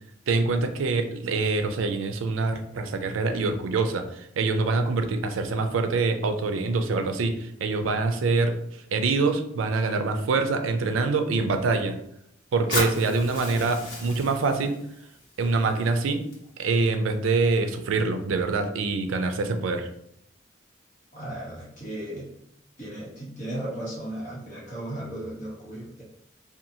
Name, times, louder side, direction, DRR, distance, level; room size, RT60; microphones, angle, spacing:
voice 1, 0.3-8.6 8.9-12.0 12.5-14.8 15.4-16.2 16.6-19.9, right 3 dB, 85° right, 7 dB, 0.4 m, -25 dB
Fire, 12.7-16.7, left 1 dB, 65° left, 1.1 m, -35 dB
voice 2, 21.1-22.3 22.8-26.0, right 1 dB, 40° left, -7 dB, 1.0 m, -35 dB
2.8 x 2.3 x 2.6 m, 0.75 s
head